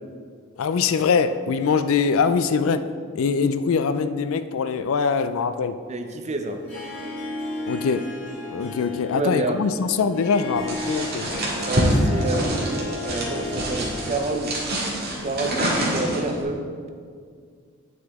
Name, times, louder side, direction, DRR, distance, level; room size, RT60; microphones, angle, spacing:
voice 1, 0.6-2.9 3.1-5.8 7.7-8.1 8.5-11.3, left 5 dB, 65° left, 12 dB, 0.4 m, -23 dB
voice 2, 5.9-6.6 9.1-9.6 11.7-14.6 15.2-16.6, right 2 dB, 30° right, 5 dB, 0.6 m, -28 dB
Harp, 6.5-14.4, left 1 dB, 90° left, 2.1 m, -34 dB
sound 1, 10.7-16.4, right 1 dB, 50° right, 1.8 m, -26 dB
9.5 x 6.0 x 3.6 m, 2.1 s
head